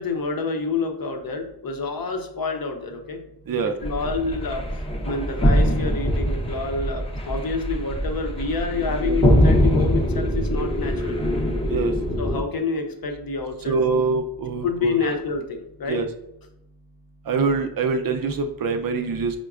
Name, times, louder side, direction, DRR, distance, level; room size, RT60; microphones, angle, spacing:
voice 1, 0.0-3.2 3.8-4.7 5.0-11.2 12.2-14.0 14.6-16.0, left 4 dB, 55° left, 4 dB, 0.6 m, -28 dB
sound 1, 3.8-12.4, equal, 15° left, 0.6 m, -23 dB
voice 2, 13.7-15.2 15.9-16.1 17.3-19.4, right 4 dB, 55° right, 6 dB, 0.5 m, -24 dB
4.7 x 2.2 x 2.4 m, 0.83 s
cardioid pair, 45°, 42 cm